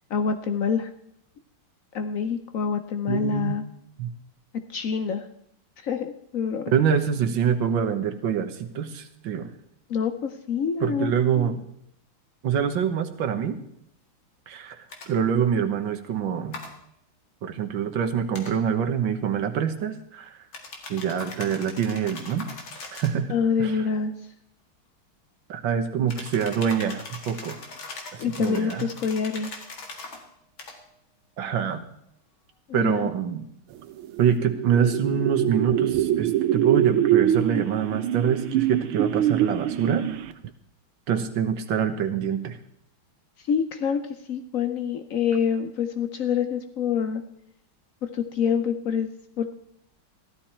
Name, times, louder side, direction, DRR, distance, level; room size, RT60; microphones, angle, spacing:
voice 1, 0.1-0.9 1.9-3.6 4.7-5.2 5.8-6.6 9.9-11.5 23.3-24.1 28.2-29.5 32.7-33.1 43.5-44.0 44.3-47.2 48.1-49.1 49.4-49.5, left 6 dB, 85° left, 8 dB, 0.7 m, -26 dB
voice 2, 3.1-3.6 4.0-4.1 6.7-9.5 10.8-11.7 12.4-13.6 14.5-16.6 17.4-20.4 20.9-22.5 22.9-23.3 23.6-23.8 25.5-27.6 28.1-28.9 31.4-31.8 32.7-33.4 34.2-40.2 41.1-42.6, right 7 dB, 65° right, 7 dB, 1.8 m, -25 dB
sound 1, 14.9-15.1 16.5-16.7 18.3-18.5 20.5-23.2 26.1-30.2 30.6-30.8, left 3 dB, 65° left, 2.8 m, -40 dB
sound 2, 34.0-40.5, right 11 dB, 90° right, 1.6 m, -24 dB
15.0 x 13.0 x 4.4 m, 0.74 s
omnidirectional pair, 2.4 m